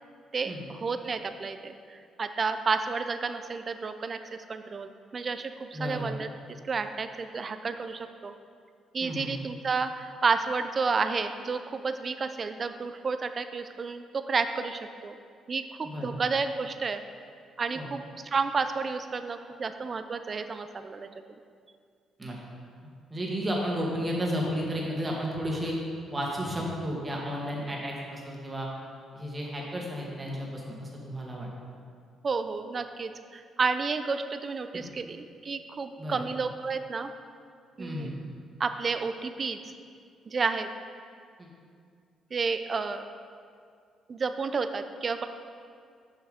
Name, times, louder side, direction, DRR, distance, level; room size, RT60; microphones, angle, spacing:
voice 1, 0.3-6.3 6.7-8.3 8.9-15.2 15.5-17.0 17.6-21.1 32.2-37.1 37.8-38.1 38.6-39.6 40.3-40.7 42.3-43.0 44.1-45.3, right 4 dB, 40° right, 9 dB, 0.4 m, -31 dB
voice 2, 5.7-6.1 9.0-9.3 15.8-16.2 17.8-17.9 22.2-22.4 23.1-25.8 26.1-28.7 29.1-31.5 34.7-34.9 36.0-36.3 37.8-38.1 41.4-41.5, equal, 25° right, -2 dB, 1.8 m, -33 dB
7.3 x 5.7 x 5.0 m, 2.2 s
cardioid pair, 90°, 0 cm